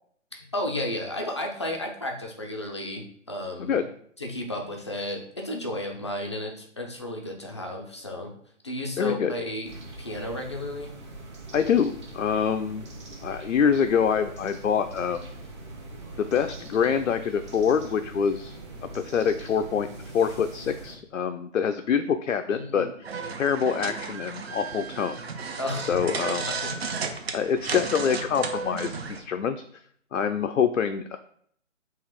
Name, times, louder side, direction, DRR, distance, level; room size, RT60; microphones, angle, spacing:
voice 1, 0.5-3.8 4.2-8.3 8.6-9.7 10.0-10.9 22.5-22.9 25.6-26.1 26.4-26.7, left 1 dB, 25° left, 1 dB, 0.4 m, -33 dB
voice 2, 9.0-9.3 11.5-12.9 13.2-15.3 16.2-18.6 18.9-19.9 20.1-22.9 23.4-25.2 25.9-26.5 27.3-29.6 30.1-31.2, left 7 dB, 85° left, 8 dB, 0.5 m, -25 dB
sound 1, 9.6-20.9, right 2 dB, 25° right, 0.8 m, -42 dB
sound 2, 23.0-29.2, right 5 dB, 55° right, 0.7 m, -33 dB
3.8 x 2.9 x 4.6 m, 0.64 s
figure-of-eight pair, 150°, 38 cm